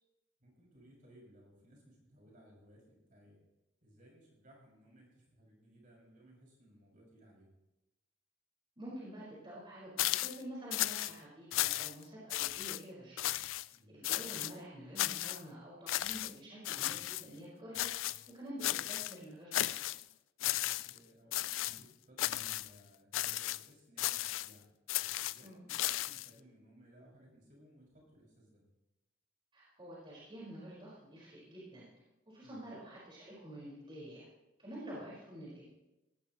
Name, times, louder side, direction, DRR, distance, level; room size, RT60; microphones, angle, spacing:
voice 1, 0.4-3.4 3.8-7.6 13.7-14.1 20.5-24.7 25.2-28.6 32.4-32.7, equal, 45° right, -3 dB, 6.3 m, -61 dB
voice 2, 8.8-13.3 13.9-17.9 18.3-20.0 25.4-25.6 29.5-31.9 32.3-34.2 34.6-35.7, right 1 dB, 25° right, -7 dB, 5.1 m, -48 dB
sound 1, 10.0-10.4 10.7-11.1 11.5-12.0 12.3-12.8 13.2-13.7 14.0-14.5 15.0-15.4 15.9-16.3 16.6-17.3 17.7-18.3 18.6-19.2 19.5-20.0 20.4-21.0 21.3-21.8 22.2-22.7 23.1-23.6 24.0-24.5 24.9-26.3, left 15 dB, 90° left, 0.4 m, -35 dB
17.5 x 17.0 x 3.1 m, 0.97 s
head